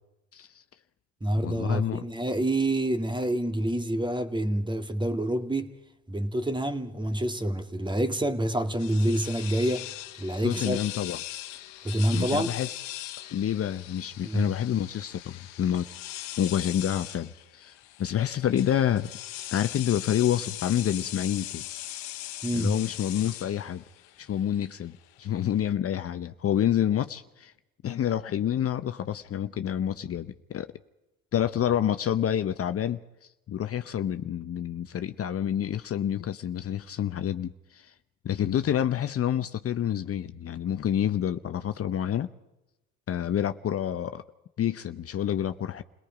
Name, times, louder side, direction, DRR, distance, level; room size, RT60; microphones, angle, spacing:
voice 1, 0.3-0.6 1.4-2.0 10.4-11.2 12.1-12.7 13.3-15.9 16.4-17.7 18.0-19.1 19.5-21.6 22.5-23.8 24.2-27.5 27.8-30.7 31.3-33.0 33.5-37.9 38.2-42.3 43.1-44.2 44.6-45.8, left 10 dB, 45° left, 0.8 m, -28 dB
voice 2, 1.2-5.7 6.1-9.9 10.2-10.8 11.8-12.5 14.2-14.5 22.4-22.8, right 1 dB, 15° right, 2.0 m, -27 dB
sound 1, 8.8-25.7, left 14 dB, 80° left, 1.3 m, -40 dB
29.5 x 18.5 x 5.1 m
supercardioid pair, 75°, 34 cm